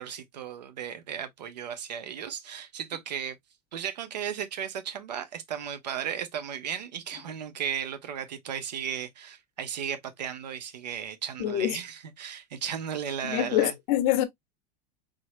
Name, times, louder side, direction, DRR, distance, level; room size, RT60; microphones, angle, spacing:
voice 1, 0.0-3.4 3.7-13.7, right 8 dB, 85° right, 0.9 m, -35 dB
voice 2, 11.4-11.8 13.2-14.2, left 13 dB, 60° left, 0.9 m, -25 dB
3.8 x 3.2 x 2.4 m
hypercardioid pair, 95°, 21 cm